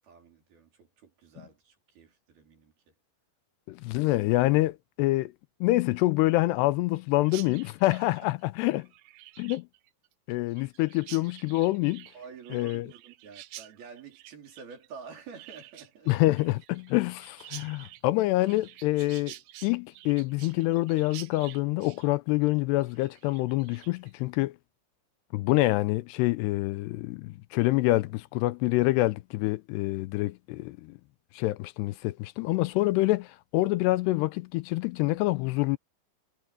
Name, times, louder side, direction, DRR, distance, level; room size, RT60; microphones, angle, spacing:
voice 1, 0.0-2.9 8.0-8.2 12.1-16.1, right 6 dB, 60° right, 6.0 m, -48 dB
voice 2, 3.7-5.3 5.6-8.9 9.4-9.7 10.3-12.1 12.5-12.9 16.1-19.3 19.6-24.6 25.3-31.0 31.3-35.8, left 19 dB, 85° left, 2.5 m, -26 dB
Chirp tweet, 7.3-24.1, right 16 dB, 90° right, 3.2 m, -49 dB
omnidirectional pair, 5.1 m